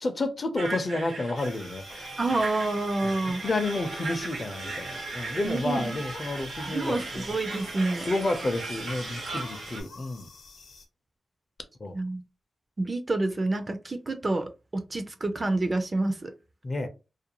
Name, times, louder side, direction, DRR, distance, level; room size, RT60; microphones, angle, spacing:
voice 1, 0.0-2.1 3.2-7.2 8.0-10.3 11.8-11.9 16.6-16.9, left 2 dB, 40° left, 0.5 m, -30 dB
sound 1, 0.6-9.8, right 2 dB, 85° right, 0.8 m, -37 dB
sound 2, 1.4-10.9, left 3 dB, 80° left, 0.7 m, -50 dB
voice 2, 2.2-3.4 5.4-6.0 6.7-8.1 11.9-12.2 12.8-16.3, right 2 dB, 35° right, 0.4 m, -28 dB
2.4 x 2.2 x 2.8 m
wide cardioid pair, 100°, 0 cm